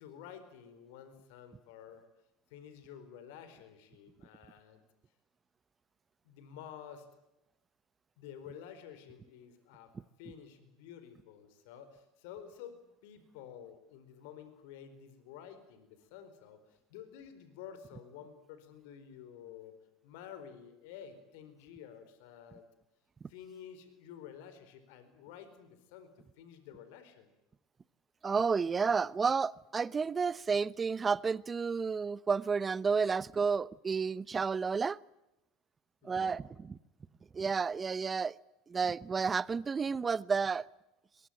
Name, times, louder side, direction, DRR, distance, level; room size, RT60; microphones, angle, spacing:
voice 1, 0.0-2.1 2.5-4.8 6.2-7.1 8.2-9.9 10.2-19.7 20.0-22.7 23.3-26.1 26.4-27.3 36.0-36.4, left 8 dB, 70° left, 4.4 m, -51 dB
voice 2, 28.2-35.0 36.0-36.4 37.3-38.3 38.7-40.7, right 5 dB, 25° right, 0.8 m, -31 dB
23.0 x 22.5 x 8.9 m
hypercardioid pair, 85°, 0 cm